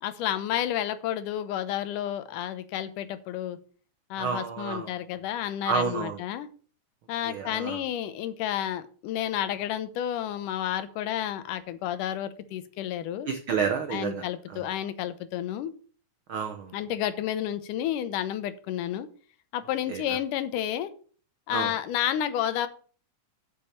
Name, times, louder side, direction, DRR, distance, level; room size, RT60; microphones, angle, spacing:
voice 1, 0.0-3.6 4.1-6.5 7.1-13.3 13.9-15.7 16.7-19.1 19.5-20.9 21.5-22.7, left 11 dB, 85° left, 12 dB, 2.4 m, -31 dB
voice 2, 4.2-4.9 5.6-6.2 7.2-7.8 13.3-14.2 14.5-14.7 16.3-16.8 19.9-20.2 21.5-21.7, right 6 dB, 80° right, 5 dB, 1.1 m, -30 dB
7.0 x 6.9 x 7.4 m, 0.43 s
omnidirectional pair, 3.6 m